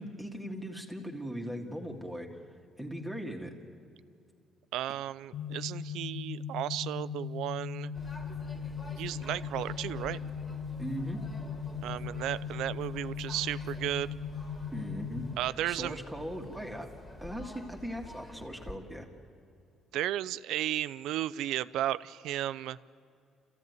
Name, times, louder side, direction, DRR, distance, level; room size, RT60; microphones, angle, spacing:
voice 1, 0.0-2.4 2.8-3.5 10.8-11.2 14.7-15.3 15.7-16.9 17.2-19.1, equal, 5° right, 2 dB, 1.8 m, -39 dB
voice 2, 4.7-7.9 9.0-10.2 11.8-14.1 15.4-16.0 19.9-22.8, right 13 dB, 85° right, 17 dB, 0.5 m, -34 dB
sound 1, 5.3-15.3, left 6 dB, 70° left, 1.0 m, -38 dB
sound 2, 7.9-18.8, left 2 dB, 30° left, 2.4 m, -48 dB
29.5 x 15.0 x 9.5 m, 2.5 s
cardioid pair, 135°, 0 cm